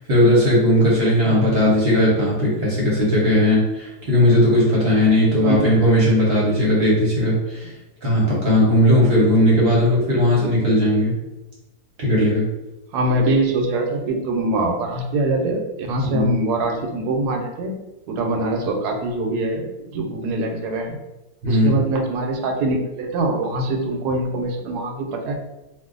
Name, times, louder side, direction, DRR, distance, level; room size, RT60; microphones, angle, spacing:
voice 1, 0.0-7.7 8.0-11.1 12.0-12.4 16.1-16.3 21.4-21.8, left 1 dB, 45° right, -6 dB, 1.0 m, -17 dB
voice 2, 1.2-1.6 5.4-5.7 12.9-17.7 18.1-21.0 21.5-25.3, right 2 dB, 80° right, 3 dB, 1.1 m, -23 dB
2.5 x 2.5 x 3.7 m, 0.98 s
omnidirectional pair, 1.7 m